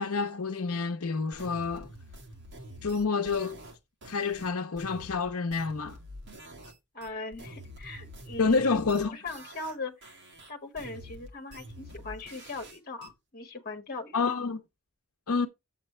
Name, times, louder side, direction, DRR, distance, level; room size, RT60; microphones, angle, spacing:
voice 1, 0.0-1.9 2.8-3.6 4.1-6.0 8.4-9.2 14.1-14.6 15.3-15.5, left 4 dB, 75° left, 0.8 m, -28 dB
sound 1, 1.3-6.8 7.0-9.8 10.0-13.1, equal, 55° right, 2.1 m, -47 dB
voice 2, 6.9-8.7 9.1-10.0 10.5-14.4, left 3 dB, 40° left, 1.5 m, -40 dB
8.1 x 7.5 x 3.2 m
head